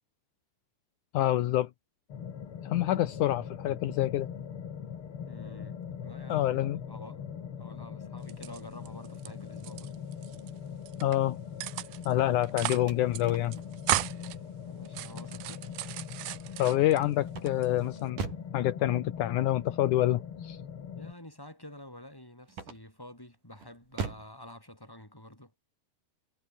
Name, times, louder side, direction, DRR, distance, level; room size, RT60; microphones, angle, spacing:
voice 1, 1.1-1.7 2.6-4.3 6.3-6.8 11.0-11.4 12.1-13.6 16.6-18.2 18.5-20.6, left 14 dB, 75° left, 1.8 m, -27 dB
sound 1, 2.1-21.1, left 7 dB, 45° left, 1.9 m, -41 dB
voice 2, 5.2-7.2 7.6-9.9 14.6-15.7 21.0-25.5, left 1 dB, 5° left, 6.3 m, -49 dB
sound 2, 8.2-9.3 9.6-10.5 10.9-11.2 11.6-12.1 12.4-12.9 13.1-13.2 13.5-14.4 14.9-17.0 17.5-18.1, right 18 dB, 85° right, 3.1 m, -35 dB
sound 3, 12.0-14.3 17.3-18.6 22.5-23.1 23.6-24.4, right 5 dB, 50° right, 5.8 m, -39 dB
omnidirectional pair, 4.9 m